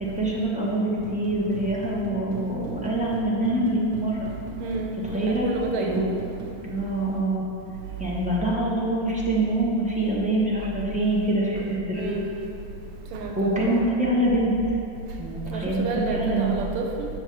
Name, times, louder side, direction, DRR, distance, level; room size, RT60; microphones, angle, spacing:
voice 1, 0.1-4.3 5.1-5.5 5.8-6.0 6.6-7.4 8.0-12.2 13.4-14.8 15.2-16.5, right 1 dB, 10° right, -6 dB, 0.3 m, -25 dB
sound 1, 0.9-6.5, right 2 dB, 60° right, 1.3 m, -39 dB
voice 2, 4.6-6.2 11.9-12.2 13.1-13.8 15.5-17.1, right 3 dB, 85° right, 2 dB, 1.7 m, -29 dB
8.8 x 6.0 x 4.7 m, 2.7 s
omnidirectional pair, 2.4 m